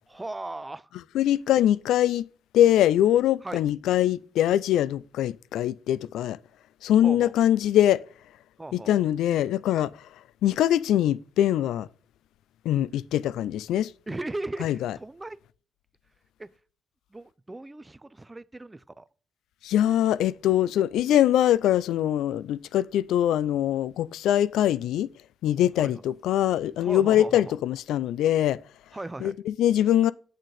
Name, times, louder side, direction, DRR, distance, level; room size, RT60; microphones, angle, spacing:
voice 1, 0.1-0.9 3.4-3.6 7.0-7.3 8.6-8.9 14.1-14.7 15.0-15.4 16.4-16.5 17.1-19.1 25.8-26.0 26.8-27.5 28.9-29.3, right 2 dB, 15° right, 0.4 m, -37 dB
voice 2, 1.1-2.3 2.5-6.4 6.8-8.0 8.7-10.1 10.4-11.9 12.6-13.9 14.6-14.9 19.6-25.1 25.4-28.6 29.2-30.1, left 12 dB, 85° left, 0.3 m, -23 dB
8.3 x 6.3 x 4.1 m
cardioid pair, 90°, 0 cm